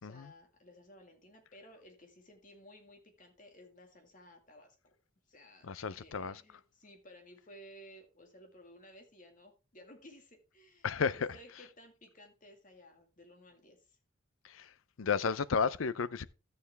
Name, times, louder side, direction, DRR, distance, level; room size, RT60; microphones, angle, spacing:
voice 1, 0.0-4.8 5.3-14.0, equal, 40° left, 2.1 m, -57 dB
voice 2, 5.6-6.4 10.8-11.3 14.4-14.7 15.0-16.2, left 5 dB, 85° left, 0.6 m, -33 dB
13.0 x 6.9 x 3.4 m
head